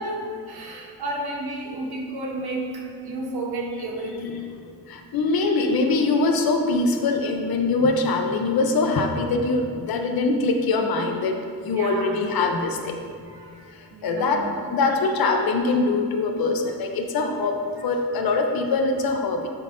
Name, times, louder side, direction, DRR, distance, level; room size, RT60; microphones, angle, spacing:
voice 1, 0.0-4.5 11.7-12.1 13.3-14.5, right 1 dB, 70° right, 0 dB, 1.1 m, -32 dB
voice 2, 4.9-12.9 14.0-19.5, left 3 dB, 60° left, 3 dB, 0.7 m, -23 dB
10.5 x 5.5 x 2.6 m, 2.2 s
wide cardioid pair, 160°, 40 cm